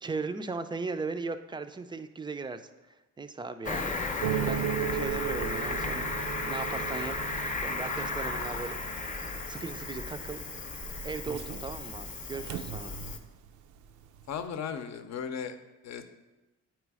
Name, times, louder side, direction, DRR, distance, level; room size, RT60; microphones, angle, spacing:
voice 1, 0.0-2.6 2.9-3.9 4.3-6.1 6.4-7.2 7.6-10.4 11.0-13.0, right 4 dB, 15° right, 10 dB, 0.4 m, -38 dB
Cricket, 3.6-13.2, left 3 dB, 25° left, 0.7 m, -35 dB
sound 1, 4.2-13.5 13.8-14.3, right 10 dB, 80° right, 0.5 m, -37 dB
voice 2, 14.3-15.6 15.8-16.1, left 7 dB, 60° left, 8 dB, 0.7 m, -36 dB
8.7 x 3.1 x 4.8 m, 1.1 s
cardioid pair, 90°, 30 cm